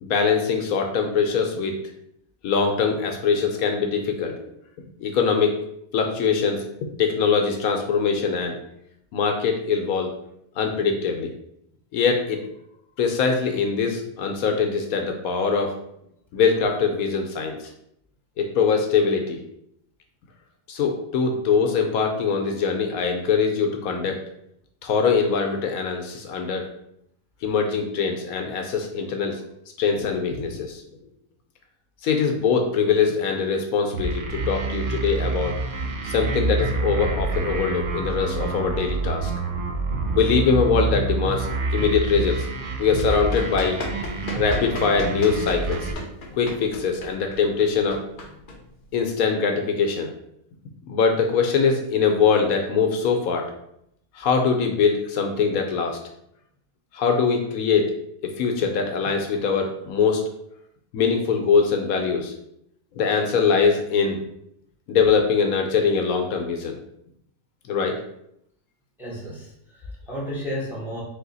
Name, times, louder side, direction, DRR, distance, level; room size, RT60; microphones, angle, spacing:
voice 1, 0.0-1.8 2.4-4.4 5.0-5.5 5.9-6.6 7.0-8.6 9.1-10.1 10.6-11.3 11.9-12.4 13.0-15.7 16.3-17.6 18.4-19.4 20.7-24.2 24.8-26.7 27.4-29.4 29.8-30.8 32.0-35.5 36.0-39.3 40.1-42.5 42.8-43.8 44.3-45.9 46.3-48.0 48.9-50.1 50.9-53.5 54.2-56.0 56.9-57.9 58.2-60.2 60.9-62.3 63.0-64.2 64.9-66.8 67.7-68.0, left 5 dB, 75° left, 3 dB, 1.0 m, -22 dB
sound 1, 33.9-45.9, right 3 dB, 65° right, 0.5 m, -27 dB
Run, 43.1-49.2, left 1 dB, 50° left, 0.6 m, -36 dB
voice 2, 69.0-71.0, equal, ahead, -5 dB, 1.0 m, -33 dB
4.1 x 2.8 x 3.9 m, 0.75 s
omnidirectional pair, 1.6 m